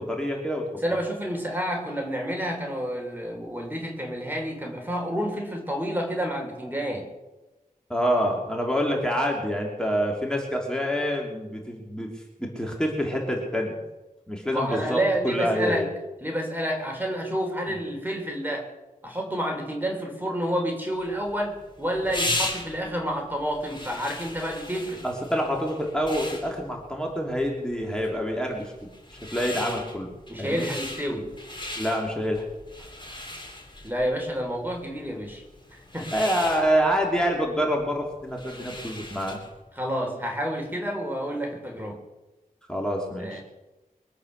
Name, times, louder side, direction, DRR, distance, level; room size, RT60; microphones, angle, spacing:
voice 1, 0.0-0.6 7.9-12.1 12.4-13.8 14.3-15.9 25.0-28.9 29.3-30.7 31.8-32.4 36.1-39.4 42.7-43.4, equal, 5° left, -1 dB, 3.1 m, -27 dB
voice 2, 0.8-7.1 14.5-15.9 16.2-18.7 19.0-25.0 30.3-31.3 33.8-35.4 35.9-36.1 39.7-42.0 43.2-43.4, equal, 15° right, 1 dB, 3.3 m, -29 dB
sound 1, 21.1-39.6, left 1 dB, 35° left, 3.3 m, -37 dB
23.5 x 8.5 x 6.6 m, 1.1 s
wide cardioid pair, 70°, 15 cm